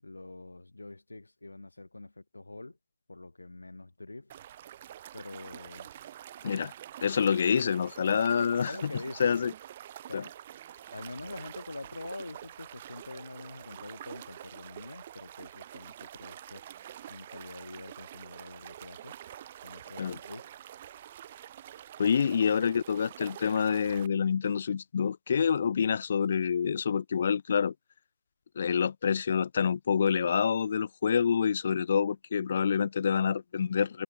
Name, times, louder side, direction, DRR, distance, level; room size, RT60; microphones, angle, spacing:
voice 1, 0.0-2.8 3.1-4.3 5.1-5.9 8.4-9.5 10.1-10.3 10.9-16.6 17.1-19.2 19.6-20.5 22.2-22.7, left 2 dB, 70° left, 5.6 m, -45 dB
sound 1, 4.3-24.1, right 11 dB, 20° right, 1.8 m, -47 dB
voice 2, 7.0-8.9 9.2-9.5 10.1-10.2 20.0-20.2 22.0-27.7 28.6-34.0, left 7 dB, 30° left, 1.9 m, -27 dB
figure-of-eight pair, 165°, 0 cm